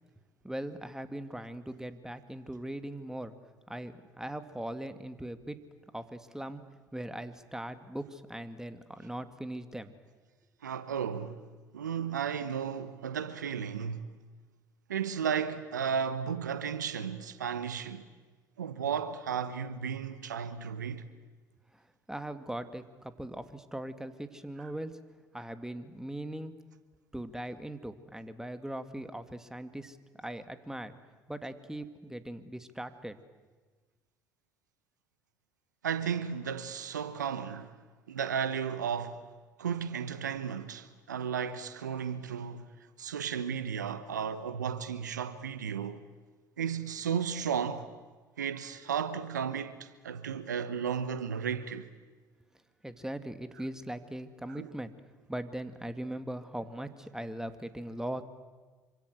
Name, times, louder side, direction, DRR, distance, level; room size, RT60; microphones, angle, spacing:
voice 1, 0.4-3.3 3.7-5.6 5.9-6.6 6.9-9.9 21.7-25.0 25.3-26.5 27.1-30.9 31.3-33.2 52.8-54.9 55.3-58.2, right 1 dB, 5° right, 2.3 m, -40 dB
voice 2, 10.6-11.4 11.7-14.1 14.9-18.1 18.6-21.1 35.8-37.8 38.1-39.2 39.6-42.7 43.0-46.0 46.6-47.9 48.4-51.9 54.6-54.7, right 7 dB, 90° right, 1.1 m, -34 dB
26.5 x 25.5 x 8.0 m
hypercardioid pair, 60°, 9 cm